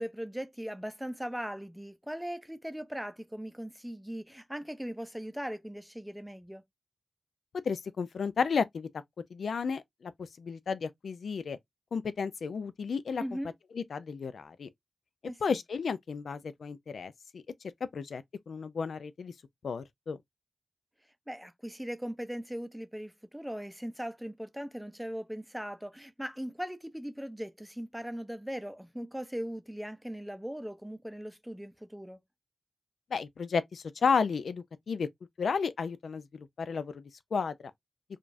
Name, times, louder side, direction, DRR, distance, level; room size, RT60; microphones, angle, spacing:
voice 1, 0.0-6.6 13.2-13.5 15.2-15.6 21.3-32.2, equal, 5° right, 0.5 m, -39 dB
voice 2, 7.7-8.9 9.3-10.1 10.4-11.6 11.9-13.2 13.8-14.7 15.4-17.4 17.9-19.3 19.6-20.2 33.1-35.1 35.4-37.5, left 5 dB, 90° left, 0.4 m, -32 dB
4.9 x 2.4 x 2.5 m
wide cardioid pair, 100°, 0 cm